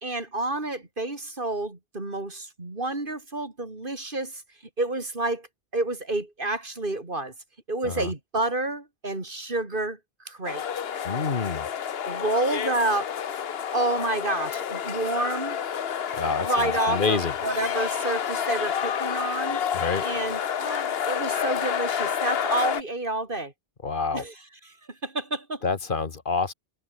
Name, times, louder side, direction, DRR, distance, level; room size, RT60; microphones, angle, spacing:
voice 1, 0.0-4.4 4.8-5.5 5.7-7.3 7.7-10.0 10.3-10.6 12.1-13.1 13.7-15.6 16.2-19.6 20.0-23.5 24.1-24.7 25.0-25.6, right 2 dB, 55° right, 3.6 m, -29 dB
sound 1, 10.4-22.8, left 8 dB, 75° left, 1.1 m, -29 dB
voice 2, 11.0-11.7 16.1-16.5 16.9-17.3 19.7-20.0 23.8-24.2 25.6-26.5, left 4 dB, 55° left, 1.5 m, -27 dB
omnidirectional pair, 1.0 m